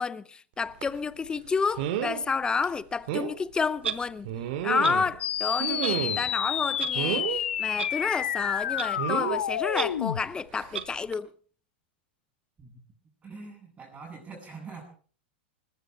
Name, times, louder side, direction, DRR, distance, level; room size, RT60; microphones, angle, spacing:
voice 1, 0.0-4.3 4.6-11.3, left 5 dB, 15° left, 0.7 m, -30 dB
sound 1, 0.8-1.0 1.8-2.2 2.6-2.7 3.1-3.3 4.2-5.2 5.6-6.3 6.9-7.4 9.0-9.4 10.5-10.7 11.1-11.2, right 10 dB, 60° right, 2.2 m, -31 dB
Clock, 3.8-4.0 4.8-4.9 5.8-5.9 6.8-6.9 7.8-7.9 8.8-8.9 9.7-9.8 10.7-10.8, right 8 dB, 90° right, 1.3 m, -31 dB
sound 2, 5.2-10.2, left 10 dB, 80° left, 1.0 m, -29 dB
voice 2, 13.2-14.8, right 4 dB, 20° right, 6.5 m, -43 dB
20.0 x 14.5 x 4.6 m
hypercardioid pair, 120°, 6 cm